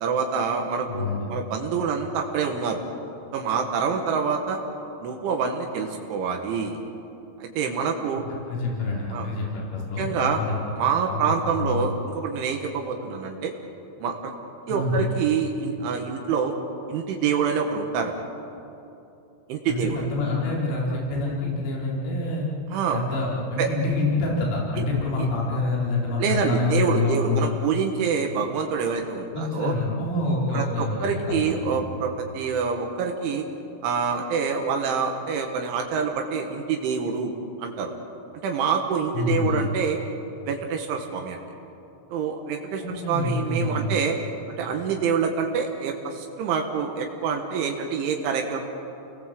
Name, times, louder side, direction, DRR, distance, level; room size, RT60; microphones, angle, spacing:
voice 1, 0.0-2.8 3.3-4.6 5.0-6.8 7.4-8.3 9.1-9.3 10.0-10.4 10.8-13.5 14.0-14.3 14.7-16.6 16.9-18.2 19.5-20.0 22.7-23.0 23.6-23.7 24.8-24.9 25.2-25.3 26.2-29.7 30.5-33.5 33.8-37.3 37.6-37.9 38.4-40.0 40.5-41.4 42.1-42.8 43.1-44.2 44.5-48.6, right 6 dB, 80° right, 3 dB, 4.0 m, -26 dB
voice 2, 0.9-1.4 8.5-10.6 11.0-11.8 14.7-15.1 19.7-22.5 22.9-27.7 29.3-31.7 39.2-39.7 42.8-44.0, left 3 dB, 85° left, -4 dB, 6.9 m, -27 dB
29.5 x 21.0 x 7.7 m, 2.9 s
omnidirectional pair, 5.5 m